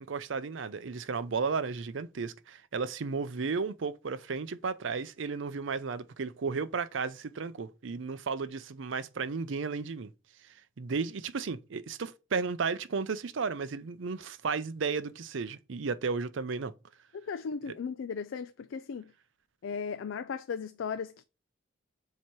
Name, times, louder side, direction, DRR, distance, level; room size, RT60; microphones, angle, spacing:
voice 1, 0.1-10.1 10.8-16.7 17.7-17.8, right 5 dB, 70° right, 0.5 m, -34 dB
voice 2, 17.2-19.1 19.6-21.2, left 6 dB, 75° left, 0.4 m, -36 dB
7.3 x 2.9 x 4.5 m
head